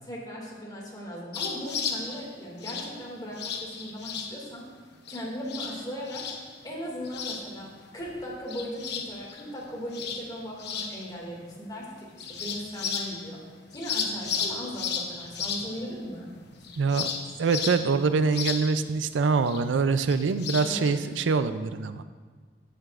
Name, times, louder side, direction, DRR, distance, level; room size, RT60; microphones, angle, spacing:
voice 1, 0.0-4.6 5.1-6.2 6.6-13.4 13.7-16.3 20.6-21.1, equal, 25° left, -3 dB, 2.2 m, -38 dB
sound 1, 1.3-2.2 2.6-2.9 3.4-4.3 5.1-5.2 5.5-5.8 6.1-6.6 7.0-7.7 8.0-11.1 11.5-11.6 12.2-13.3 13.7-21.2, left 6 dB, 65° left, 0.9 m, -34 dB
voice 2, 16.8-17.1 17.4-22.0, right 4 dB, 90° right, 12 dB, 0.4 m, -24 dB
14.5 x 7.9 x 2.5 m, 1.5 s
head